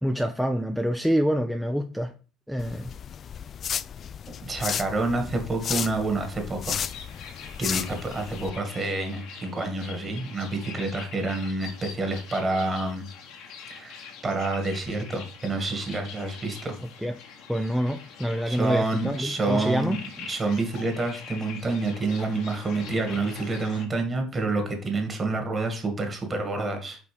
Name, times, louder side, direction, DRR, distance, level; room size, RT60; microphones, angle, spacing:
voice 1, 0.0-2.1 2.5-2.9 17.0-17.1 17.5-20.0, equal, ahead, 5 dB, 0.6 m, -26 dB
sound 1, 2.6-8.5, left 8 dB, 45° left, 0.3 m, -34 dB
voice 2, 4.4-6.8 7.6-13.1 13.7-16.7 18.5-19.9 20.3-27.0, right 2 dB, 30° right, 5 dB, 2.1 m, -28 dB
sound 2, 6.7-23.9, left 6 dB, 70° left, 1.4 m, -44 dB
5.4 x 3.9 x 5.1 m, 0.36 s
supercardioid pair, 75°, 0 cm